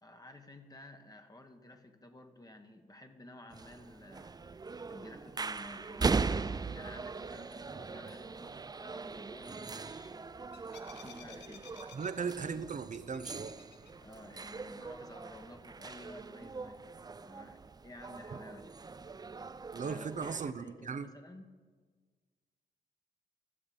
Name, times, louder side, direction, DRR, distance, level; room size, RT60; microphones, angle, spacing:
voice 1, 0.0-4.4 4.9-10.5 10.9-11.7 14.0-16.8 17.2-18.7 19.8-21.5, left 1 dB, 20° left, 6 dB, 1.3 m, -52 dB
sound 1, 3.5-20.5, right 4 dB, 20° right, 0.4 m, -40 dB
sound 2, 10.0-14.9, left 8 dB, 90° left, 0.8 m, -58 dB
voice 2, 11.9-13.6 19.7-21.1, right 5 dB, 45° right, 12 dB, 0.8 m, -37 dB
13.5 x 7.2 x 6.8 m, 1.5 s
cardioid pair, 55°, 18 cm